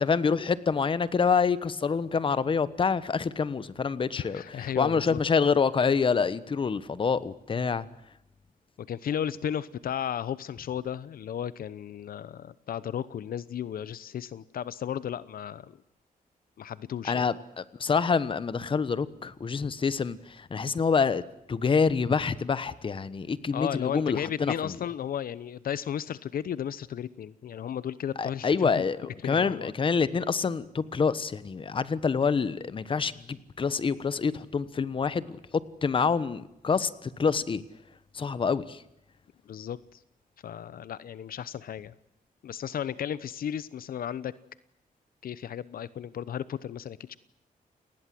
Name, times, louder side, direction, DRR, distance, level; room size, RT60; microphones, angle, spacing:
voice 1, 0.0-7.8 17.1-24.7 28.2-37.6 38.1-38.8, left 5 dB, 35° left, 1.2 m, -27 dB
voice 2, 4.1-5.2 8.8-15.8 16.6-17.3 23.5-28.8 29.2-29.7 39.5-40.0 40.4-41.9 42.4-44.3 45.2-47.2, left 9 dB, 75° left, 0.9 m, -34 dB
29.0 x 20.0 x 7.8 m
wide cardioid pair, 165°, 15 cm